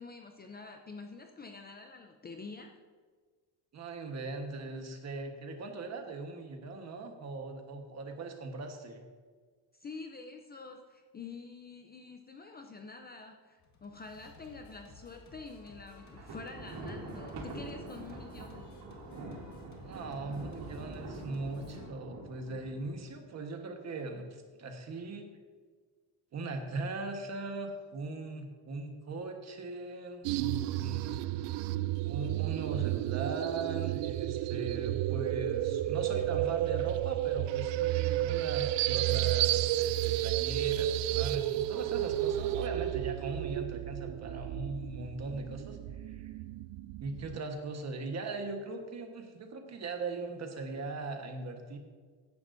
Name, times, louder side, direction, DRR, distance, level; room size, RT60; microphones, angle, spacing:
voice 1, 0.0-2.7 9.7-18.7, left 4 dB, 25° left, 4 dB, 0.5 m, -47 dB
voice 2, 3.7-9.1 19.8-25.3 26.3-31.2 31.6-31.7 32.0-46.3 47.0-51.8, right 3 dB, 40° right, 4 dB, 1.3 m, -40 dB
Singing, 13.6-21.9, left 2 dB, 40° left, 1.7 m, -55 dB
Thunder, 16.0-23.2, right 2 dB, 60° right, 2.7 m, -45 dB
sound 1, 30.2-47.4, right 14 dB, 75° right, 0.5 m, -32 dB
15.5 x 10.5 x 2.6 m, 1.5 s
cardioid pair, 165°, 43 cm